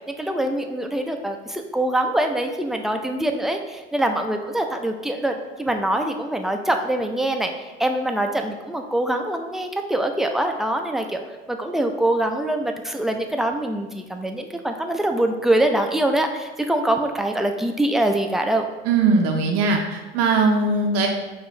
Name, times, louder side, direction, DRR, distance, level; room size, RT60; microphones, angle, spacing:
voice 1, 0.2-7.5 7.8-11.2 11.5-18.7, right 1 dB, ahead, 4 dB, 0.3 m, -24 dB
voice 2, 18.8-21.1, right 3 dB, 50° right, 2 dB, 0.6 m, -20 dB
5.5 x 2.4 x 3.0 m, 1.2 s
hypercardioid pair, 65°, 30 cm